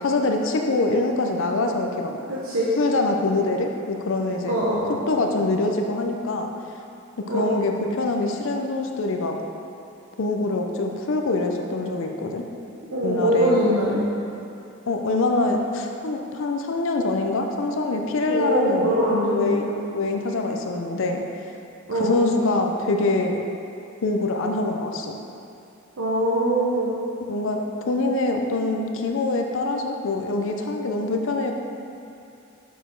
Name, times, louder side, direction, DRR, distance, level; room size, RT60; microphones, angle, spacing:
voice 1, 0.0-2.1 2.8-4.6 5.1-6.5 7.3-9.4 10.2-12.4 13.0-13.7 14.9-18.9 19.3-21.2 21.9-23.4 24.0-25.1 27.3-31.5, left 2 dB, 65° left, 3 dB, 0.5 m, -24 dB
voice 2, 2.3-2.7 4.5-5.0 7.3-7.6 12.9-14.0 18.3-19.6 21.9-22.2 26.0-27.0, right 1 dB, 80° right, -7 dB, 0.9 m, -22 dB
6.5 x 5.0 x 4.5 m, 2.7 s
head